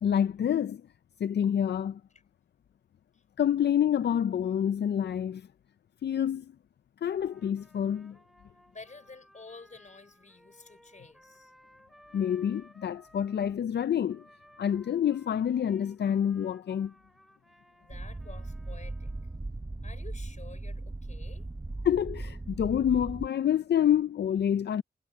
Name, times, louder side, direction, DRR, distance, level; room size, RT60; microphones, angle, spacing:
voice 1, 0.0-0.8 1.2-2.0 3.4-5.5 6.0-6.5 7.0-8.2 12.1-14.2 14.6-16.9 21.8-24.8, left 9 dB, 85° left, 0.4 m, -27 dB
Trumpet, 7.1-13.6 14.1-19.4, equal, ahead, 3.6 m, -60 dB
voice 2, 8.7-11.5 17.8-19.1 19.8-21.5, left 3 dB, 45° left, 4.6 m, -50 dB
sound 1, 17.9-23.3, right 2 dB, 20° right, 0.6 m, -38 dB
wide cardioid pair, 90°, 17 cm